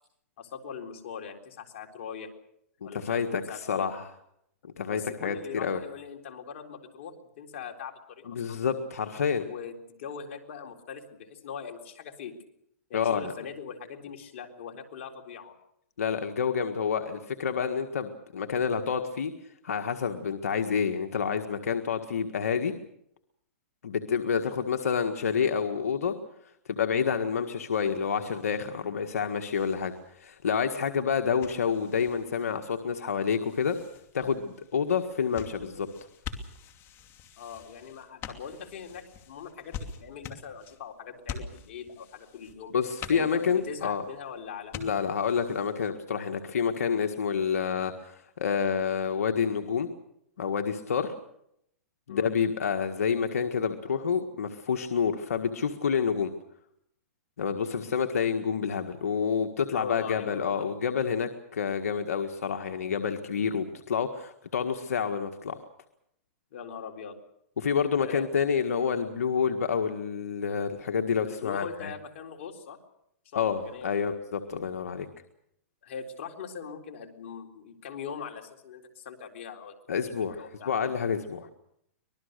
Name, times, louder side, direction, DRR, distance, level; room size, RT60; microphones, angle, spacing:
voice 1, 0.4-2.3 2.8-3.9 4.9-8.6 9.2-12.4 12.9-15.5 37.4-42.8 43.1-44.8 52.1-52.3 59.6-60.7 66.5-67.2 68.0-68.3 71.3-72.8 73.2-74.1 75.8-79.8 80.4-80.7, left 7 dB, 60° left, 3 dB, 3.9 m, -41 dB
voice 2, 2.9-4.1 4.6-5.8 8.3-9.4 12.9-13.3 16.0-19.3 19.6-22.7 23.8-26.1 26.7-29.9 30.2-33.8 34.1-35.9 42.7-44.0 44.7-49.9 50.4-51.1 52.1-56.3 57.4-65.6 67.6-71.9 73.3-75.1 79.9-81.5, left 6 dB, 90° left, 5 dB, 1.6 m, -28 dB
sound 1, 27.7-45.9, left 6 dB, 30° left, 2.7 m, -46 dB
25.0 x 20.0 x 6.7 m, 0.75 s
hypercardioid pair, 140°, 8 cm